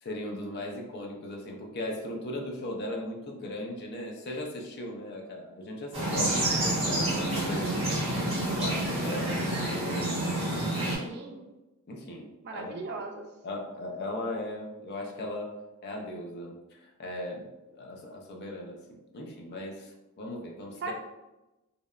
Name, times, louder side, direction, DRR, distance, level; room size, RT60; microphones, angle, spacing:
voice 1, 0.0-7.9 8.5-10.2 11.9-12.8 13.4-15.6 15.8-17.4 17.7-20.9, left 1 dB, 45° left, 1 dB, 0.4 m, -38 dB
sound 1, 5.9-11.0, right 1 dB, 30° right, 0.8 m, -28 dB
voice 2, 10.8-11.4 12.4-13.3 20.8-20.9, right 3 dB, 50° right, 3 dB, 0.3 m, -38 dB
2.7 x 2.0 x 2.3 m, 1.0 s
head